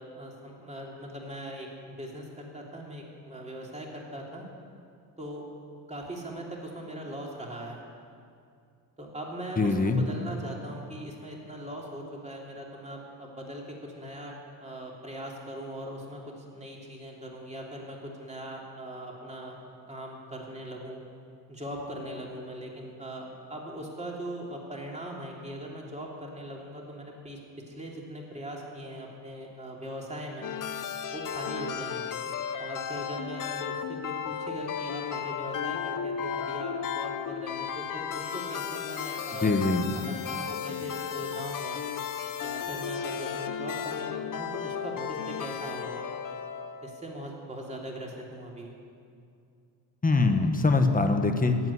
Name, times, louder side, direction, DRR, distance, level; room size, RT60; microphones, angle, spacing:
voice 1, 0.0-4.4 5.2-5.4 5.9-7.8 9.0-19.6 19.9-21.0 21.5-27.4 27.7-30.5 31.1-32.2 32.6-39.6 39.9-41.8 42.4-46.1 46.8-48.7, right 1 dB, 15° right, -2 dB, 3.0 m, -40 dB
voice 2, 9.6-10.0 39.4-39.9 50.0-51.6, left 3 dB, 20° left, 6 dB, 1.3 m, -23 dB
sound 1, 30.4-47.0, left 7 dB, 45° left, 0.9 m, -34 dB
15.0 x 7.9 x 9.8 m, 2.4 s
cardioid pair, 95°, 45 cm